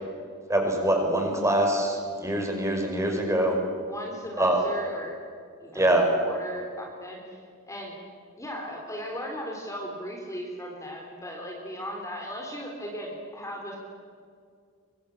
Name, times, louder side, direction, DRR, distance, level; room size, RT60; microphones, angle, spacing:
voice 1, 0.5-3.6 4.4-4.6 5.7-6.1, right 1 dB, 15° right, 2 dB, 5.4 m, -24 dB
voice 2, 3.8-5.2 5.6-5.9 6.2-7.4 7.7-8.0 8.4-13.8, equal, 15° left, 0 dB, 3.9 m, -37 dB
24.0 x 24.0 x 9.0 m, 2.2 s
head